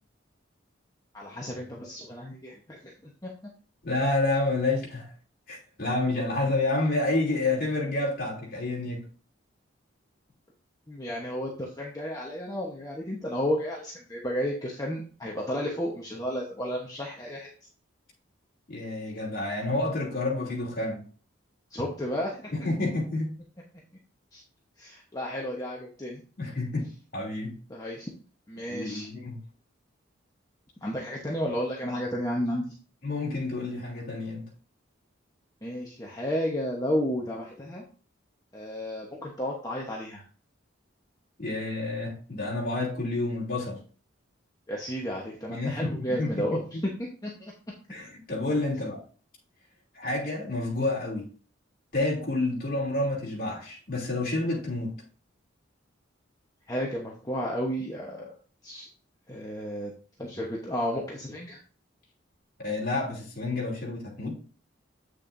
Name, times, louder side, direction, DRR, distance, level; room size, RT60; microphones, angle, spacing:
voice 1, 1.1-3.3 10.9-17.5 21.7-22.5 24.3-24.4 24.8-26.2 27.7-28.1 28.5-29.1 30.8-32.7 35.6-37.8 38.5-40.2 44.7-47.5 56.7-58.3 58.6-58.9 59.3-59.9 60.2-61.6, equal, 20° left, 1.0 m, -32 dB
voice 2, 3.8-5.1 5.5-9.0 18.7-21.0 22.5-23.3 26.4-27.5 28.6-29.4 33.0-34.5 41.4-43.8 45.5-46.8 47.9-49.0 49.9-51.3 51.9-54.9 62.6-64.3, left 2 dB, 45° left, 2.9 m, -29 dB
8.4 x 6.4 x 2.6 m
head